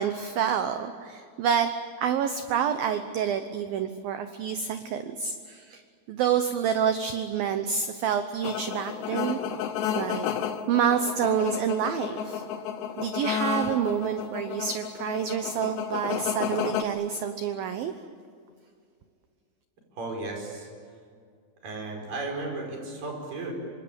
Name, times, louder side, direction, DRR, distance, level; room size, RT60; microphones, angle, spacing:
voice 1, 0.0-1.7 2.0-5.8 6.1-9.4 10.0-10.3 10.7-12.4 13.0-17.9, right 8 dB, 80° right, 8 dB, 2.1 m, -28 dB
sound 1, 8.4-16.8, left 8 dB, 70° left, 3.2 m, -32 dB
voice 2, 19.9-20.7 21.6-23.5, right 3 dB, 45° right, 1 dB, 6.8 m, -34 dB
26.0 x 25.0 x 8.7 m, 2.2 s
omnidirectional pair, 5.5 m